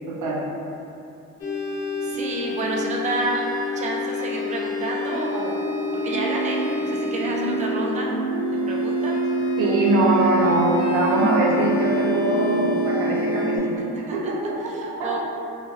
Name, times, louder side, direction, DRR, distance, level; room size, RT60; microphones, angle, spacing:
voice 1, 0.1-0.4 9.6-14.6 15.0-15.2, right 1 dB, 85° right, -2 dB, 0.5 m, -23 dB
sound 1, 1.4-13.6, equal, 50° left, 0.9 m, -25 dB
voice 2, 2.0-3.4 3.7-5.6 5.9-8.2 8.5-9.2 13.9-14.3 14.6-15.2, right 2 dB, 25° right, -2 dB, 0.4 m, -30 dB
2.9 x 2.3 x 2.8 m, 2.9 s
cardioid pair, 90°, 30 cm